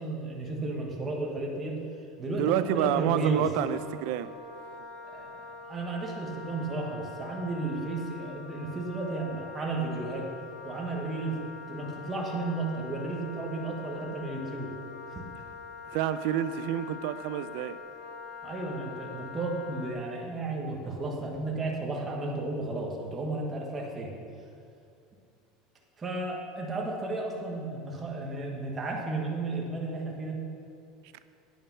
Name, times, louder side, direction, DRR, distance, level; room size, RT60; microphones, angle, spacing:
voice 1, 0.0-1.8 2.2-3.5 5.1-10.3 10.6-11.4 11.7-14.7 15.1-15.2 18.4-24.1 26.0-30.4, right 2 dB, 15° right, -2 dB, 1.3 m, -33 dB
voice 2, 2.4-4.3 15.9-17.8, right 11 dB, 55° right, 13 dB, 0.5 m, -28 dB
Wind instrument woodwind instrument, 3.7-19.9, left 4 dB, 30° left, 1.7 m, -44 dB
9.3 x 8.8 x 5.6 m, 2.5 s
cardioid pair, 180°, 0 cm